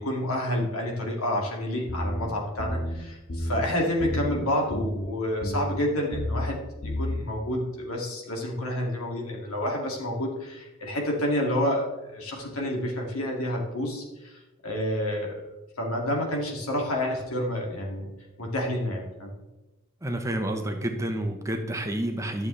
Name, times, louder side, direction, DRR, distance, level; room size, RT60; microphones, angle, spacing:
voice 1, 0.0-15.3 15.8-18.1 18.4-19.3, left 1 dB, 90° left, -1 dB, 2.3 m, -29 dB
sound 1, 1.9-2.2 2.6-3.0 3.3-3.7 4.0-4.4 4.7-5.1 5.4-5.8 6.1-6.5 6.8-7.2, left 1 dB, 70° left, 1.7 m, -30 dB
voice 2, 20.0-22.5, right 1 dB, 15° right, 4 dB, 0.8 m, -29 dB
12.0 x 7.1 x 3.3 m, 1.1 s
head